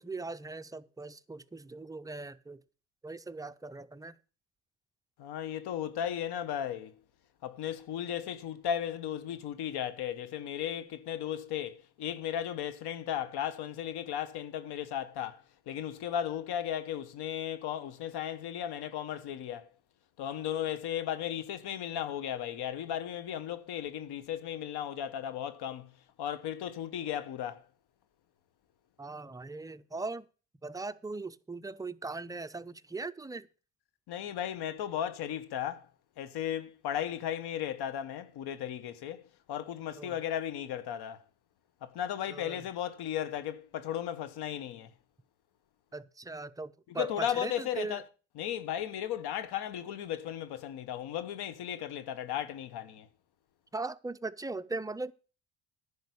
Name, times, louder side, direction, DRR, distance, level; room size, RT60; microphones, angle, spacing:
voice 1, 0.0-2.6 3.0-4.2 29.0-30.2 30.6-33.5 40.0-40.2 42.3-42.6 45.9-48.0 53.7-55.1, right 3 dB, 10° right, 0.4 m, -39 dB
voice 2, 5.2-6.9 7.4-19.7 20.2-25.9 26.2-27.6 34.1-35.9 36.2-41.2 41.8-44.9 46.9-48.0 48.4-53.1, left 10 dB, 65° left, 1.3 m, -35 dB
10.5 x 5.2 x 8.4 m
supercardioid pair, 95°, 42 cm